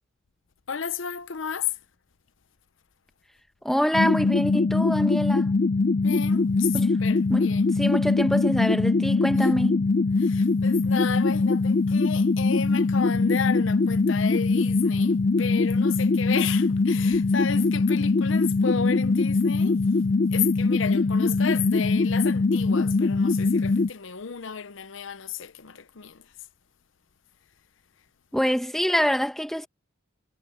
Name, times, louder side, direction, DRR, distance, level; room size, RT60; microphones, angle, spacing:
voice 1, 0.7-1.8 6.0-7.7 10.2-19.8 20.3-26.3, left 7 dB, 65° left, 0.7 m, -32 dB
voice 2, 3.6-5.5 6.7-7.0 7.3-7.5 7.8-9.9 28.3-29.7, equal, ahead, 1.3 m, -25 dB
sound 1, 3.9-23.9, left 3 dB, 40° left, 0.4 m, -22 dB
head